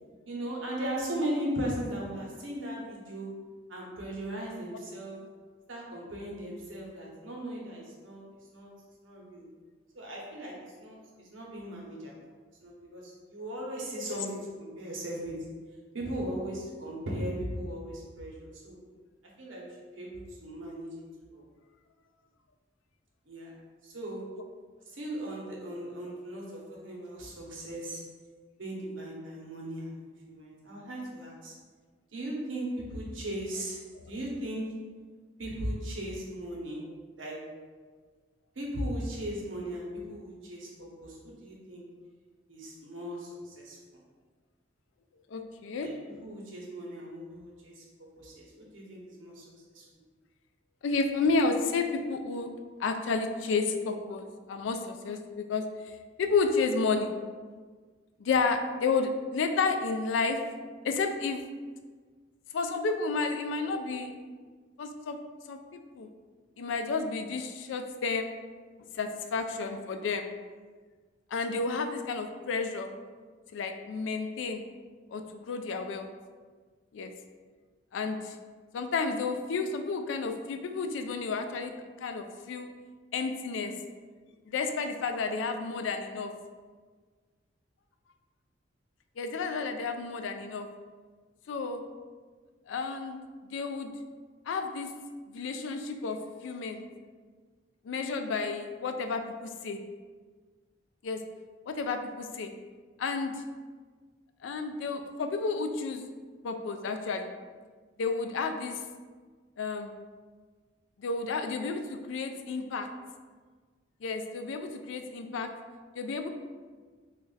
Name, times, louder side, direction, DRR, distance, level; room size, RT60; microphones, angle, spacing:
voice 1, 0.3-3.4 3.7-5.2 5.7-8.7 9.0-9.4 9.9-12.2 12.6-15.5 15.9-18.8 19.4-21.0 21.3-21.4 23.3-23.6 23.8-24.4 24.9-28.1 28.6-30.0 30.3-31.5 32.1-34.8 35.4-36.9 37.2-37.5 38.5-41.9 42.5-43.8 45.8-45.9 46.2-47.8 48.2-49.5 49.7-49.8, right 1 dB, 90° right, -3 dB, 0.9 m, -38 dB
voice 2, 45.3-45.9 50.8-52.5 52.8-55.6 56.2-57.1 58.2-60.4 60.8-61.4 62.5-64.1 64.8-65.2 65.5-66.1 66.6-68.3 68.8-70.3 71.3-72.9 73.5-74.6 75.1-76.1 76.9-77.1 77.9-78.4 78.7-81.7 82.0-82.7 83.1-83.7 84.5-86.3 89.2-90.7 91.5-91.8 92.7-93.2 93.5-93.9 94.5-94.9 95.3-96.8 97.8-99.8 101.0-101.2 101.7-102.5 103.0-103.4 104.4-106.0 106.4-107.3 108.0-108.8 109.6-109.9 111.0-112.9 114.0-115.5 116.0-116.3, left 4 dB, 75° left, 6 dB, 0.3 m, -31 dB
3.1 x 2.4 x 3.9 m, 1.5 s
head